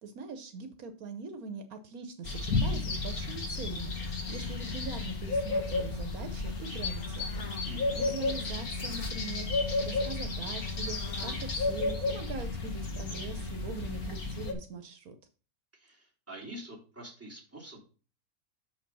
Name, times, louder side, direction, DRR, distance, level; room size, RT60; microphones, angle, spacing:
voice 1, 0.0-7.4 8.0-15.1, right 4 dB, 75° right, 8 dB, 1.3 m, -42 dB
sound 1, 2.2-14.5, left 3 dB, 80° left, 2.1 m, -33 dB
voice 2, 7.7-8.2 15.7-17.8, right 1 dB, 10° right, -4 dB, 3.0 m, -46 dB
6.6 x 5.7 x 5.3 m, 0.36 s
omnidirectional pair, 1.5 m